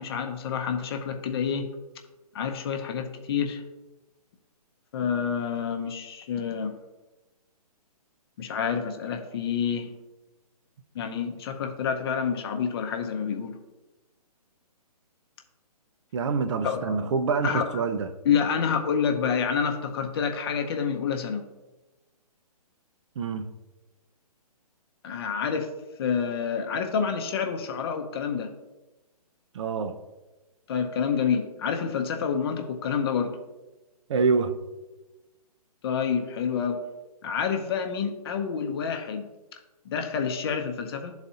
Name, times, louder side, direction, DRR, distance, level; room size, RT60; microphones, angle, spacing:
voice 1, 0.0-1.7 2.3-3.6 4.9-6.7 8.4-9.9 10.9-13.5 16.6-17.0 17.4-17.8 18.2-21.4 25.0-25.7 26.0-28.5 30.7-33.4 35.8-36.8 37.2-39.3 39.8-41.1, left 7 dB, 40° left, 5 dB, 0.7 m, -28 dB
voice 2, 16.1-18.1 23.2-23.5 29.5-29.9 34.1-34.5, right 5 dB, 50° right, 10 dB, 0.5 m, -26 dB
11.0 x 4.0 x 2.8 m, 1.1 s
figure-of-eight pair, 135°, 20 cm